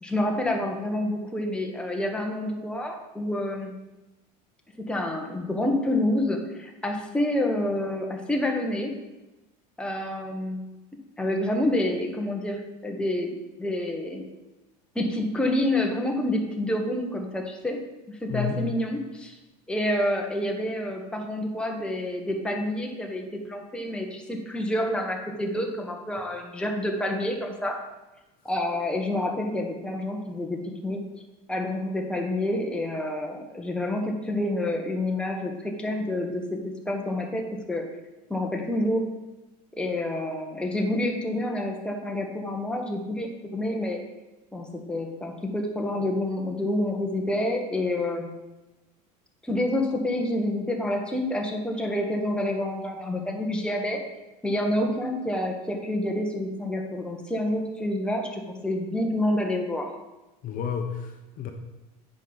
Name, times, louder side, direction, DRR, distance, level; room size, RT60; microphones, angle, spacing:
voice 1, 0.0-3.7 4.8-8.9 9.8-10.6 11.2-13.3 13.6-14.2 14.9-17.8 18.1-19.4 19.7-27.8 28.4-31.0 31.5-36.4 36.9-37.8 38.3-39.1 39.8-44.0 44.5-48.3 49.4-54.0 54.4-59.9, left 1 dB, 5° left, 1 dB, 1.2 m, -28 dB
voice 2, 18.3-18.6 60.4-61.5, left 8 dB, 45° left, 5 dB, 0.9 m, -31 dB
9.3 x 5.2 x 4.1 m, 1.0 s
supercardioid pair, 110°, 20 cm